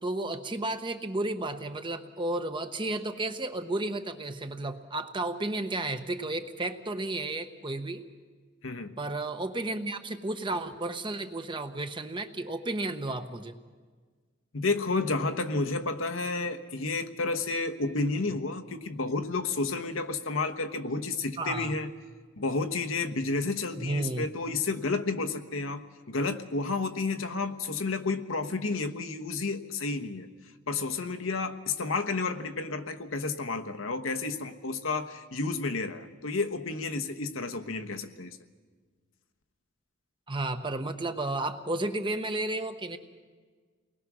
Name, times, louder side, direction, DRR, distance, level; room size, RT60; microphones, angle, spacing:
voice 1, 0.0-8.1 9.0-13.6 21.4-21.7 23.8-24.3 40.3-43.0, right 2 dB, 25° right, 8 dB, 1.0 m, -32 dB
voice 2, 14.5-21.9 22.4-30.3 30.7-38.4, left 3 dB, 90° left, 7 dB, 1.2 m, -31 dB
29.0 x 20.0 x 6.2 m, 1.5 s
head